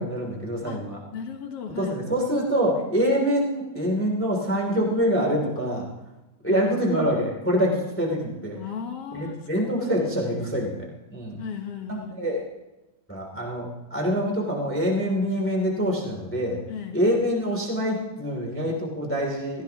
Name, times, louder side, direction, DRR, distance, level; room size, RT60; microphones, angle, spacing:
voice 1, 0.0-1.0 1.8-5.9 6.4-8.6 9.1-11.4 11.9-12.4 13.1-16.6 16.9-19.6, equal, 5° left, 0 dB, 2.2 m, -25 dB
voice 2, 1.1-2.0 6.5-6.7 8.5-9.4 9.8-10.6 11.4-12.2 16.7-17.0, left 7 dB, 60° left, 4 dB, 1.7 m, -36 dB
17.0 x 15.0 x 2.9 m, 1.0 s
omnidirectional pair, 4.1 m